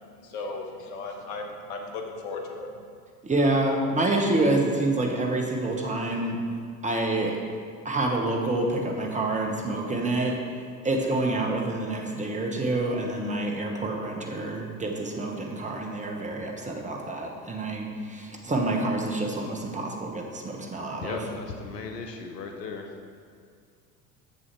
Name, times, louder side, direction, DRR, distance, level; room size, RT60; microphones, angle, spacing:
voice 1, 0.0-2.7, left 3 dB, 60° left, 2 dB, 1.4 m, -36 dB
voice 2, 3.2-6.4 6.8-7.4 7.8-10.4 10.8-21.2, right 2 dB, 15° right, 0 dB, 1.2 m, -27 dB
voice 3, 21.0-22.9, left 4 dB, 80° left, 4 dB, 0.9 m, -36 dB
7.5 x 6.7 x 4.7 m, 2.2 s
figure-of-eight pair, 75°, 47 cm